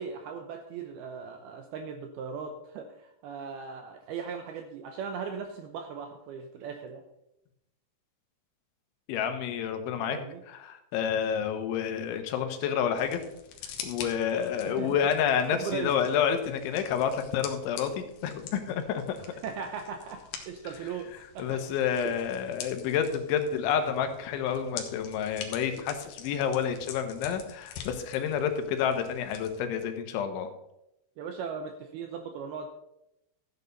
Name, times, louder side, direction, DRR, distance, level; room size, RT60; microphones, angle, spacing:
voice 1, 0.0-7.0 10.1-10.4 14.7-15.0 15.5-15.9 19.4-20.2 20.5-21.1 21.4-21.6 22.0-22.1 31.2-32.7, right 6 dB, 80° right, 5 dB, 2.3 m, -38 dB
voice 2, 9.1-10.2 10.5-13.2 13.8-19.2 21.4-30.5, left 8 dB, 85° left, 7 dB, 3.5 m, -29 dB
sound 1, 13.0-29.6, left 8 dB, 65° left, 2.7 m, -46 dB
13.5 x 9.0 x 4.0 m, 0.83 s
omnidirectional pair, 5.3 m